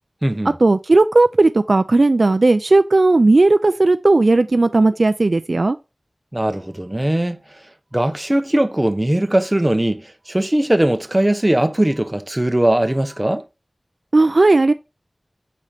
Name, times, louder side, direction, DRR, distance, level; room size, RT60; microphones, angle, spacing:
voice 1, 0.6-5.8 14.1-14.7, right 2 dB, 75° right, 0.3 m, -15 dB
voice 2, 6.3-7.4 7.9-13.4, right 1 dB, 25° right, 0.8 m, -19 dB
5.1 x 4.3 x 4.9 m
wide cardioid pair, 45°, 0 cm